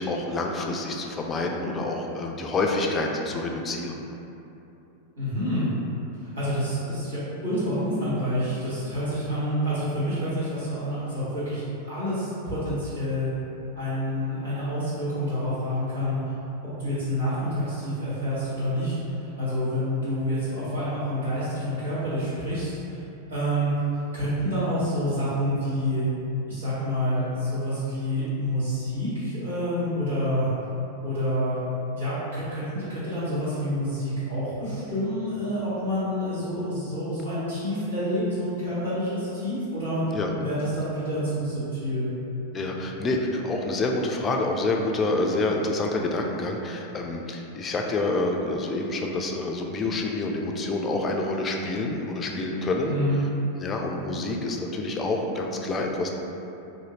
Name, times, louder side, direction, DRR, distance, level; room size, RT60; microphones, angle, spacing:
voice 1, 0.0-4.0 40.1-40.3 42.5-52.9 53.6-56.1, left 2 dB, 20° left, 1 dB, 0.3 m, -27 dB
voice 2, 5.2-5.7 6.4-11.6 11.9-13.3 13.7-16.2 16.6-18.9 19.2-23.0 23.3-23.8 24.1-26.0 26.5-30.5 31.0-31.6 31.9-40.0 40.4-42.1 52.9-53.2, equal, 70° right, -12 dB, 1.4 m, -28 dB
2.7 x 2.6 x 2.8 m, 2.8 s
figure-of-eight pair, 90°, 0 cm